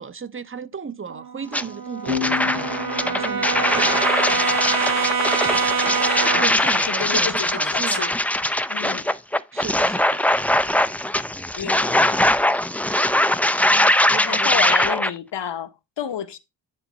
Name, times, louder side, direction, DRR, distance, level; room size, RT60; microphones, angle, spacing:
voice 1, 0.0-2.7 3.0-4.1 6.4-8.1 9.5-10.2 10.7-10.9 14.1-14.7, right 6 dB, 30° right, 0.8 m, -35 dB
Brass instrument, 1.1-6.6, right 5 dB, 50° right, 1.4 m, -25 dB
sound 1, 1.5-1.6 2.1-15.1, left 1 dB, 5° left, 0.5 m, -21 dB
sound 2, 2.1-5.5, left 7 dB, 75° right, 3.8 m, -32 dB
voice 2, 5.6-5.9 6.3-8.1 8.7-9.0 11.6-12.3 13.7-13.9 14.2-16.4, left 9 dB, 70° left, 1.3 m, -30 dB
9.9 x 4.0 x 5.1 m
cardioid pair, 80°, 45 cm